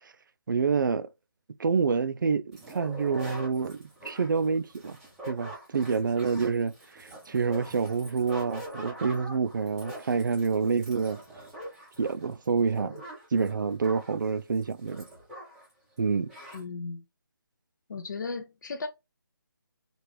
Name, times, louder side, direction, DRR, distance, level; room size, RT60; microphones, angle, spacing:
voice 1, 0.5-1.1 1.6-5.0 5.2-11.2 12.0-13.0 13.3-15.1 16.0-16.3, right 5 dB, 60° right, 0.4 m, -27 dB
sound 1, 2.5-15.7 16.0-16.1 16.3-16.6, equal, 5° right, 0.6 m, -44 dB
voice 2, 16.5-17.0 17.9-18.9, left 4 dB, 55° left, 0.5 m, -35 dB
3.0 x 2.5 x 3.1 m
hypercardioid pair, 170°, 12 cm